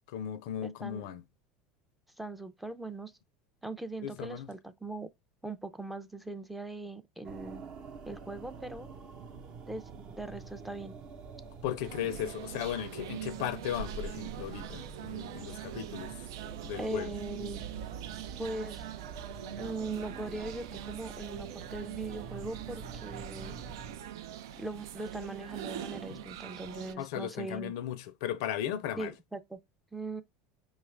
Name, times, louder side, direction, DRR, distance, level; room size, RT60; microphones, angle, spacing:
voice 1, 0.1-1.2 4.0-4.5 11.6-16.3 16.6-17.1 24.0-24.1 27.0-29.1, left 10 dB, 75° left, 0.5 m, -36 dB
voice 2, 0.6-1.0 2.2-3.1 3.6-5.1 5.4-7.6 8.1-8.9 9.7-10.9 16.8-17.6 18.4-18.8 19.6-23.5 24.6-27.7 29.0-29.6 29.9-30.2, right 2 dB, 5° right, 0.4 m, -40 dB
sound 1, 7.2-24.0, right 5 dB, 50° right, 0.8 m, -47 dB
sound 2, 11.8-26.9, right 10 dB, 90° right, 0.4 m, -43 dB
5.0 x 2.4 x 3.2 m
supercardioid pair, 125°, 2 cm